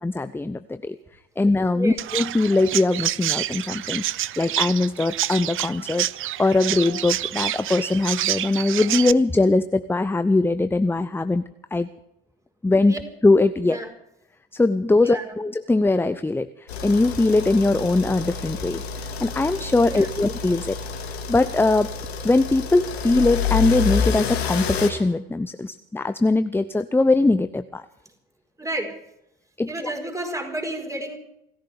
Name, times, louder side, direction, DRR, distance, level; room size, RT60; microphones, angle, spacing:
voice 1, 0.0-1.0 1.4-4.0 4.4-6.1 6.4-11.9 12.6-13.0 13.2-13.8 14.5-20.8 21.3-21.9 22.2-27.8 29.6-29.7, left 2 dB, 5° left, 12 dB, 0.6 m, -21 dB
Chirp tweet, 2.0-9.1, right 13 dB, 40° right, 0.6 m, -28 dB
voice 2, 15.0-15.3 19.8-20.1 28.6-29.0 29.7-31.2, right 1 dB, 10° right, 3 dB, 4.7 m, -30 dB
sound 1, 16.7-24.9, left 6 dB, 90° left, 2.3 m, -28 dB
28.0 x 14.5 x 3.6 m, 0.84 s
hypercardioid pair, 65°, 31 cm